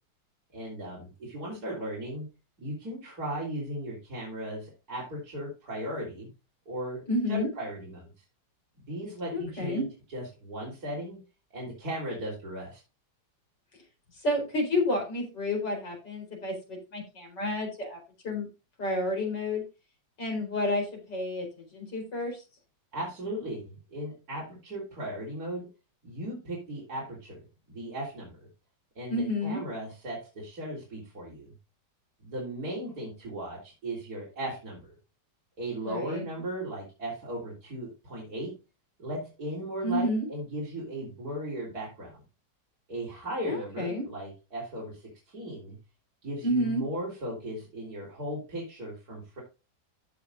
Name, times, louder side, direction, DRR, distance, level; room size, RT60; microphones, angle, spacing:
voice 1, 0.5-2.3 2.6-6.3 6.7-7.0 7.3-8.1 8.9-9.9 10.1-11.2 11.5-12.8 22.9-25.7 26.0-28.5 29.0-31.5 32.2-34.9 35.6-38.5 39.0-42.2 42.9-45.8 46.2-49.4, right 1 dB, 55° right, -4 dB, 4.2 m, -37 dB
voice 2, 7.1-7.5 9.3-9.8 14.2-18.0 18.2-18.5 18.8-19.6 20.2-22.4 29.1-29.6 35.8-36.2 39.8-40.3 43.5-44.0 46.4-46.8, left 1 dB, 70° left, 1 dB, 5.0 m, -30 dB
15.0 x 6.1 x 2.6 m, 0.29 s
omnidirectional pair, 1.9 m